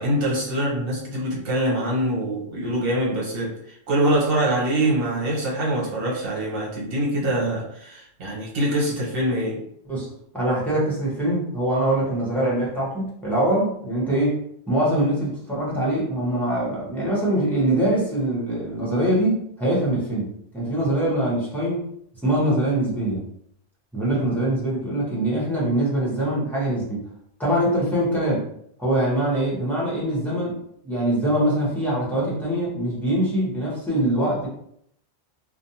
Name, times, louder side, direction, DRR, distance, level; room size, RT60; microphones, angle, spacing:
voice 1, 0.0-9.6, right 1 dB, 60° right, -4 dB, 1.0 m, -24 dB
voice 2, 9.9-14.4 14.7-21.8 22.2-23.2 23.9-27.1 27.4-28.4 28.8-30.6 30.8-34.5, right 1 dB, ahead, -7 dB, 0.9 m, -23 dB
2.5 x 2.2 x 2.8 m, 0.70 s
omnidirectional pair, 1.1 m